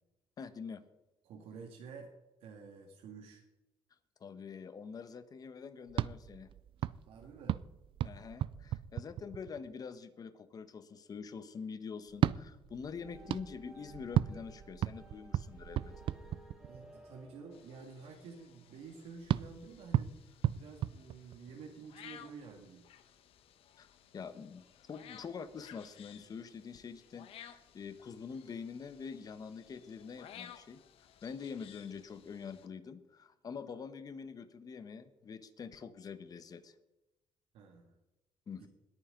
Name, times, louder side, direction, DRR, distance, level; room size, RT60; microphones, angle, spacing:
voice 1, 0.4-0.8 4.2-6.5 8.0-16.0 23.8-23.9 24.1-30.8 31.2-36.7 38.5-38.7, left 6 dB, 40° left, 12 dB, 1.2 m, -45 dB
voice 2, 1.2-2.1 2.4-3.4 7.1-7.6 16.7-22.9 37.5-38.0 38.6-38.7, right 5 dB, 85° right, 1 dB, 2.1 m, -50 dB
sound 1, 5.9-9.7 12.1-17.0 19.3-21.7, right 11 dB, 60° right, 0.5 m, -36 dB
sound 2, 13.0-18.7, right 1 dB, 5° left, 4.7 m, -58 dB
sound 3, 17.5-32.7, left 10 dB, 75° left, 1.2 m, -57 dB
21.0 x 9.5 x 3.9 m, 1.0 s
cardioid pair, 125°, 10 cm